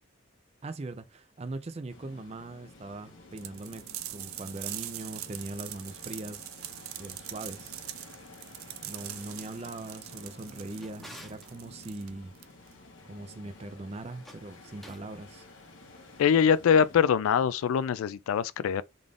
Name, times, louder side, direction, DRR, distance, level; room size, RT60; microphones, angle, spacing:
voice 1, 0.6-6.5 7.0-7.8 8.8-12.3 13.0-15.5, right 2 dB, 30° right, 0.4 m, -41 dB
sound 1, 1.9-17.0, left 2 dB, 65° left, 1.1 m, -51 dB
sound 2, 3.4-12.8, right 13 dB, 90° right, 0.4 m, -42 dB
Drawer open or close, 10.3-11.5 14.1-15.1, equal, ahead, 0.7 m, -51 dB
voice 2, 16.2-18.8, left 7 dB, 85° left, 0.3 m, -23 dB
3.8 x 2.4 x 3.3 m
head